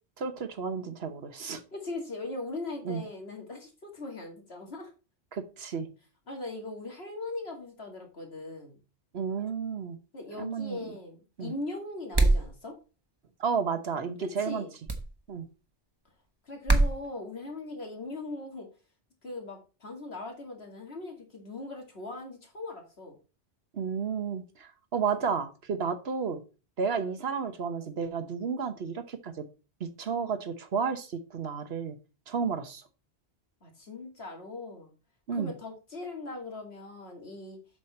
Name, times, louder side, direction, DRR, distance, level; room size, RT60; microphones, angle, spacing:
voice 1, 0.2-1.6 2.8-3.0 5.3-5.9 9.1-10.0 10.4-10.9 11.4-11.5 13.4-14.7 15.3-15.5 23.7-26.4 26.8-29.5 29.8-32.0 32.3-32.8 35.3-35.5, right 6 dB, 65° right, 10 dB, 1.3 m, -32 dB
voice 2, 1.7-4.9 6.3-8.8 10.1-12.7 14.2-14.7 16.4-18.7 19.2-23.2 33.6-34.9 35.3-37.6, left 2 dB, 65° left, 2 dB, 2.6 m, -40 dB
sound 1, 12.1-12.5 14.9-15.1 16.7-16.9, right 2 dB, 25° right, 1.1 m, -22 dB
7.9 x 6.3 x 4.2 m, 0.32 s
omnidirectional pair, 1.1 m